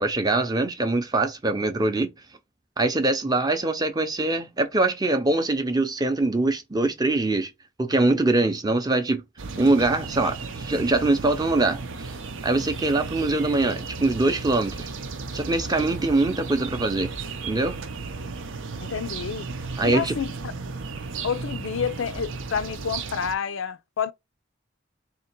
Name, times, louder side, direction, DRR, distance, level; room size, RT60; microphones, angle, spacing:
voice 1, 0.0-2.1 2.8-7.5 7.8-9.2 9.6-12.1 12.4-14.9 15.3-17.1 17.5-17.8 19.8-20.2, right 2 dB, 20° right, 0.6 m, -23 dB
sound 1, 9.4-23.3, right 4 dB, 75° right, 0.6 m, -35 dB
voice 2, 18.9-19.5 19.8-20.5 21.2-24.1, left 6 dB, 80° left, 0.5 m, -29 dB
3.6 x 2.9 x 4.4 m
head